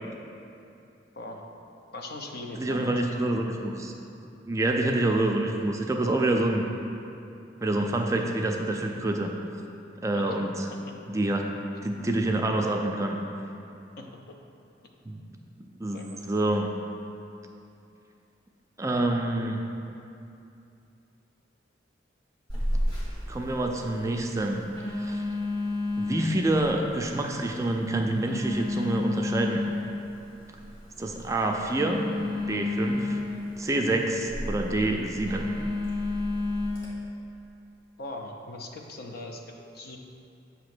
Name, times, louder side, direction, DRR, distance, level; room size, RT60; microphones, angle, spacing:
voice 1, 1.9-3.3 4.8-4.9 10.1-10.4 14.0-14.1 15.9-16.1 38.0-40.0, left 2 dB, 55° left, 1 dB, 0.6 m, -40 dB
voice 2, 2.5-3.9 4.5-6.6 7.6-9.3 10.0-10.7 11.1-11.4 11.8-13.2 15.1-15.2 15.8-16.7 18.8-19.6 23.3-24.6 24.9-25.2 26.0-29.6 31.0-33.2 33.6-35.5, right 1 dB, 15° right, 2 dB, 0.4 m, -27 dB
Telephone, 22.5-36.9, left 2 dB, 20° left, 1.5 m, -32 dB
8.1 x 2.8 x 6.0 m, 2.7 s
head